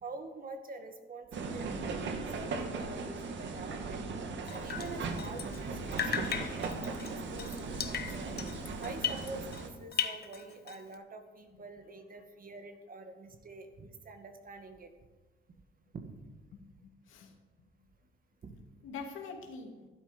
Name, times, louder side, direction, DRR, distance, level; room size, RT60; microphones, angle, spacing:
voice 1, 0.0-4.0 4.5-8.3 8.8-14.9 15.9-16.1 18.4-18.5, right 3 dB, 45° right, 6 dB, 1.9 m, -46 dB
sound 1, 1.3-9.7, right 4 dB, 65° right, 1.7 m, -38 dB
Drip, 4.5-5.7 5.9-9.7 9.9-10.9, left 8 dB, 50° left, 1.0 m, -37 dB
voice 2, 16.8-17.7 18.8-19.9, left 4 dB, 85° left, 2 dB, 2.5 m, -45 dB
12.0 x 11.5 x 5.2 m, 1.2 s
cardioid pair, 90°, 20 cm